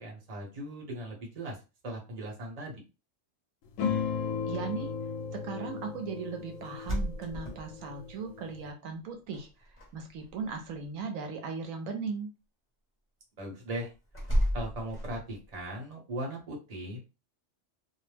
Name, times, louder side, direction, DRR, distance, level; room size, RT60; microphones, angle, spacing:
voice 1, 0.0-1.6 1.8-2.8 13.4-13.9 14.5-17.0, right 1 dB, 35° right, -1 dB, 0.9 m, -38 dB
sound 1, 3.8-8.7, left 6 dB, 90° left, 1.0 m, -36 dB
voice 2, 4.5-4.9 5.3-12.3, right 5 dB, 85° right, 4 dB, 1.0 m, -38 dB
sound 2, 6.6-8.2 9.3-9.9 10.2-10.7 14.1-15.5, equal, 10° left, 1.0 m, -32 dB
2.5 x 2.0 x 3.2 m, 0.29 s
omnidirectional pair, 1.3 m